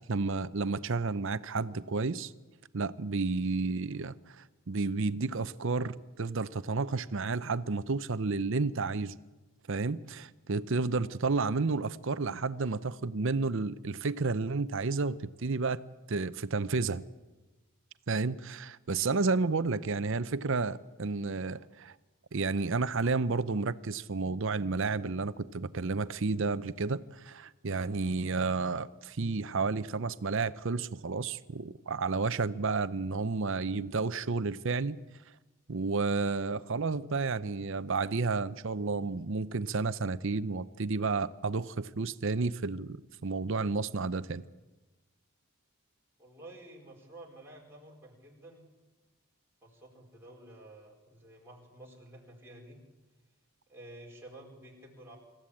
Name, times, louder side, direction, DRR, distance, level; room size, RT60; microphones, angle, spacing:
voice 1, 0.1-2.3 2.7-9.1 9.7-15.8 16.1-17.0 18.1-21.9 22.3-35.0 35.7-44.4, right 4 dB, 60° right, 0.7 m, -31 dB
voice 2, 46.2-48.6 49.6-52.8 53.7-55.2, right 1 dB, 10° right, 4.5 m, -51 dB
26.0 x 14.5 x 8.6 m
head